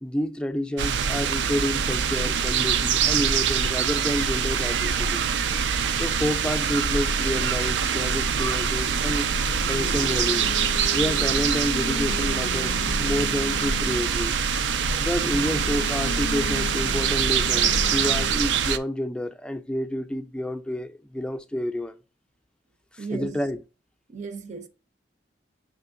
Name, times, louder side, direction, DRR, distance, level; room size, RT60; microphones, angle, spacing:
voice 1, 0.0-5.2 6.0-9.3 9.7-10.5 10.9-14.4 15.0-21.9 22.9-23.6, left 1 dB, 5° left, 0.4 m, -29 dB
sound 1, 0.8-18.8, right 6 dB, 85° right, 0.4 m, -24 dB
Singing, 8.7-14.1 14.7-18.6, left 5 dB, 85° left, 0.4 m, -38 dB
voice 2, 23.0-23.4 24.1-24.7, right 4 dB, 45° right, 0.6 m, -35 dB
6.9 x 3.0 x 2.5 m
head